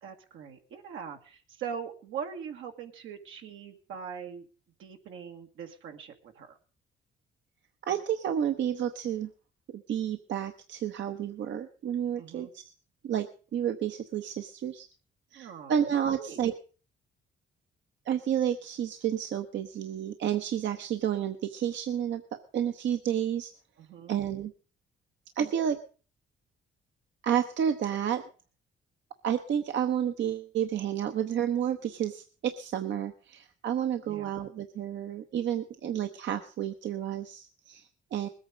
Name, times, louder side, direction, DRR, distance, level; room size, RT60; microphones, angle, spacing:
voice 1, 0.0-4.5 4.8-6.6 12.2-12.5 15.4-16.4 23.8-24.2 34.0-34.3, right 7 dB, 85° right, 4 dB, 2.0 m, -42 dB
voice 2, 7.8-9.3 9.9-12.6 13.0-13.3 13.5-14.9 15.3-16.5 18.1-23.5 24.1-24.5 25.4-25.8 27.2-28.2 29.2-38.3, right 9 dB, 70° right, 7 dB, 1.0 m, -30 dB
20.0 x 8.7 x 5.1 m, 0.39 s
cardioid pair, 90°, 20 cm